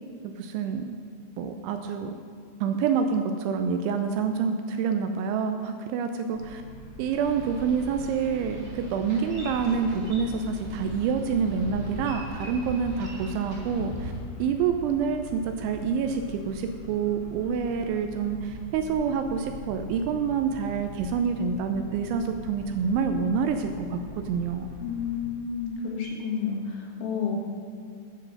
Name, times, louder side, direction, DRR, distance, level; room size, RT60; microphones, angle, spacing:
voice 1, 0.4-1.0 1.4-2.1 2.6-6.6 7.0-14.1 14.4-24.0 24.3-24.7, right 6 dB, 85° right, 6 dB, 2.8 m, -27 dB
sound 1, 6.3-25.2, equal, 40° left, 1.9 m, -43 dB
Boat Water vehicle, 7.1-14.2, equal, 40° right, 1.6 m, -40 dB
voice 2, 24.8-27.4, left 6 dB, 75° left, -2 dB, 3.9 m, -30 dB
9.7 x 7.6 x 6.4 m, 2.1 s
omnidirectional pair, 5.7 m